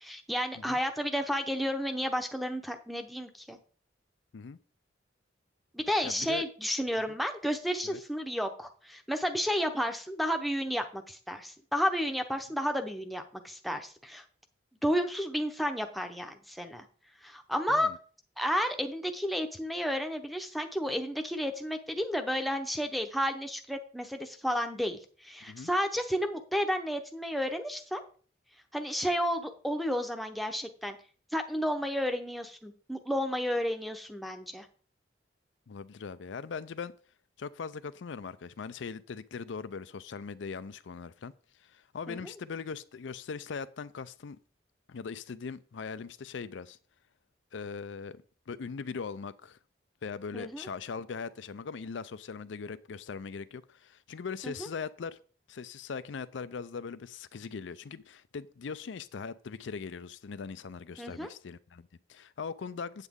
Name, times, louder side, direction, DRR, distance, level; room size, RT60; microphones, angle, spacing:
voice 1, 0.0-3.6 5.7-14.2 14.8-16.8 17.2-17.9 18.4-28.0 28.7-31.0 31.3-34.7 42.1-42.2 50.3-50.6 54.4-54.7 61.0-61.3, equal, ahead, 0.8 m, -32 dB
voice 2, 6.0-6.4 7.1-7.2 7.8-8.0 17.7-18.0 25.4-25.7 35.7-36.9 37.4-41.3 41.6-44.4 44.9-46.8 47.5-49.6 50.0-55.2 55.5-63.1, left 5 dB, 75° left, 0.4 m, -40 dB
8.1 x 8.1 x 3.6 m
head